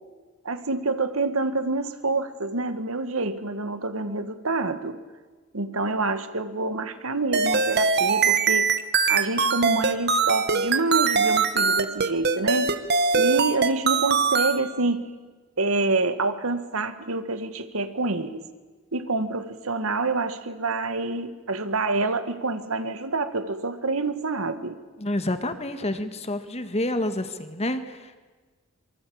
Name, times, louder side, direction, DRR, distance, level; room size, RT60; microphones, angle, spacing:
voice 1, 0.4-5.0 5.5-8.7 9.1-12.7 13.1-15.1 15.6-18.4 18.9-24.8, right 3 dB, 70° right, 10 dB, 1.7 m, -27 dB
sound 1, 7.3-14.6, right 5 dB, 50° right, 1.5 m, -22 dB
voice 2, 25.0-28.2, left 1 dB, 30° left, 9 dB, 1.7 m, -28 dB
26.5 x 24.0 x 8.7 m, 1.3 s
head